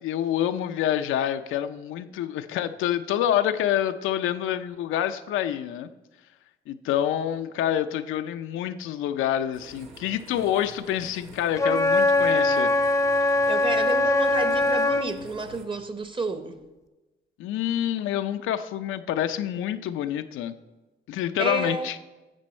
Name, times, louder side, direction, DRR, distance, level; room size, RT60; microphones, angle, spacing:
voice 1, 0.0-5.9 6.7-12.7 17.4-20.5 21.1-22.0, left 11 dB, 85° left, 9 dB, 0.5 m, -27 dB
sound 1, 9.5-15.7, right 1 dB, 90° right, 1.5 m, -47 dB
Wind instrument woodwind instrument, 11.6-15.1, left 2 dB, 15° left, 0.6 m, -22 dB
voice 2, 13.5-16.6 21.4-21.9, right 3 dB, 25° right, 9 dB, 0.9 m, -30 dB
11.5 x 7.4 x 4.3 m, 1.1 s
cardioid pair, 90°, 20 cm